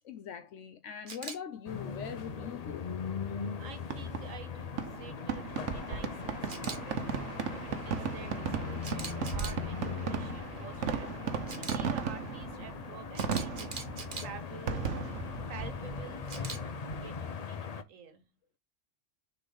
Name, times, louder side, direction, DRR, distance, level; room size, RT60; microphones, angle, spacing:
voice 1, 0.0-2.9, left 8 dB, 75° left, 1.0 m, -42 dB
Camera, 1.1-1.4 6.5-6.8 8.8-9.6 11.5-11.8 13.1-14.3 16.3-16.6, right 4 dB, 40° right, 1.2 m, -41 dB
sound 1, 1.7-17.8, left 6 dB, 45° left, 0.6 m, -40 dB
voice 2, 3.6-7.1 7.5-11.1 11.5-13.7 14.2-14.9 15.5-18.2, right 7 dB, 90° right, 1.5 m, -49 dB
Fireworks, 3.8-17.4, right 6 dB, 70° right, 1.2 m, -37 dB
6.4 x 4.4 x 3.9 m
omnidirectional pair, 1.3 m